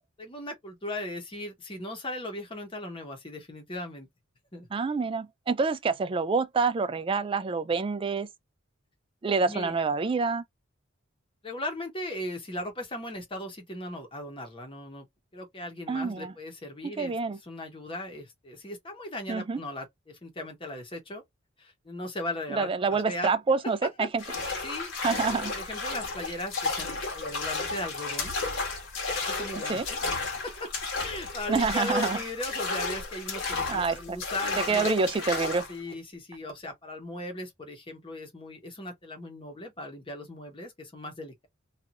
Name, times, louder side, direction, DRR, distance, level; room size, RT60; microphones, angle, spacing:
voice 1, 0.2-4.1 4.5-4.7 9.4-9.7 11.4-15.1 15.3-17.1 17.4-21.2 21.6-23.3 24.0-24.4 24.6-28.4 29.1-30.7 31.0-34.9 35.7-41.5, left 1 dB, 25° left, 1.0 m, -38 dB
voice 2, 4.7-8.3 9.2-10.4 15.9-16.3 16.8-17.4 19.3-19.6 22.5-24.2 25.0-25.5 29.7-29.9 31.5-32.2 33.7-34.2 34.7-35.7, right 4 dB, 25° right, 0.3 m, -27 dB
sound 1, 24.2-35.8, left 3 dB, 75° left, 1.3 m, -33 dB
2.8 x 2.6 x 2.5 m
head